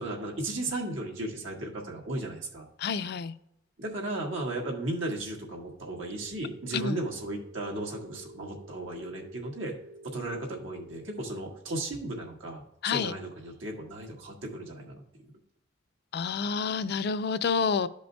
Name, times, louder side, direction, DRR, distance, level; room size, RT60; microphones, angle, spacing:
voice 1, 0.0-2.7 3.8-9.7 10.0-15.0, right 2 dB, 85° right, 1.7 m, -35 dB
voice 2, 2.8-3.3 6.7-7.0 12.8-13.1 16.1-17.9, left 5 dB, 55° left, 0.4 m, -28 dB
Telephone, 6.2-11.2, right 2 dB, 50° right, 1.3 m, -50 dB
12.5 x 5.2 x 2.2 m
head